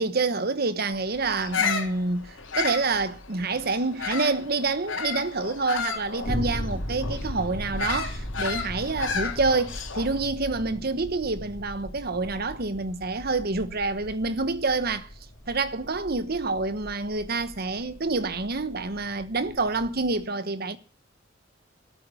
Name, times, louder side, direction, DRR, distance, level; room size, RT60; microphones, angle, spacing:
voice 1, 0.0-15.1 15.5-20.8, right 3 dB, 55° right, 1.2 m, -27 dB
sound 1, 0.9-20.2, equal, 50° left, 3.9 m, -39 dB
Bird vocalization bird call bird song, 1.3-4.4 4.9-10.2, left 5 dB, 90° left, 3.1 m, -32 dB
13.0 x 8.4 x 9.7 m
head